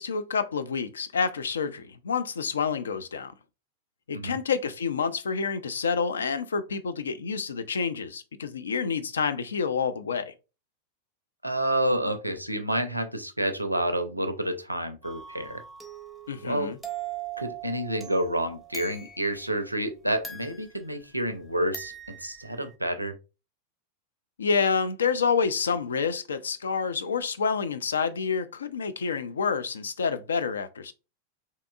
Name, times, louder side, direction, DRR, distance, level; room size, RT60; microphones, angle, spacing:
voice 1, 0.0-3.3 4.1-10.3 16.3-16.8 24.4-30.9, left 5 dB, 70° left, 0.3 m, -28 dB
voice 2, 11.4-15.6 16.4-16.7 17.4-23.1, right 1 dB, 90° right, 0.4 m, -29 dB
sound 1, 15.0-19.5 20.2-21.3 21.7-22.7, right 7 dB, 5° left, 0.7 m, -41 dB
3.5 x 2.8 x 2.3 m
figure-of-eight pair, 90°, 0 cm